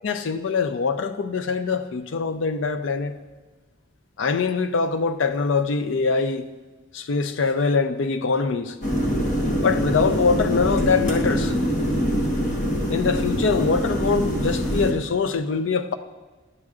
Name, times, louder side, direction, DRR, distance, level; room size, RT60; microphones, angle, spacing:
voice 1, 0.0-3.2 4.2-6.5 6.9-8.7 9.6-11.5 12.9-15.9, left 4 dB, 70° left, 0.5 m, -23 dB
sound 1, 8.8-14.9, equal, 40° left, 1.1 m, -24 dB
11.0 x 7.5 x 2.4 m
head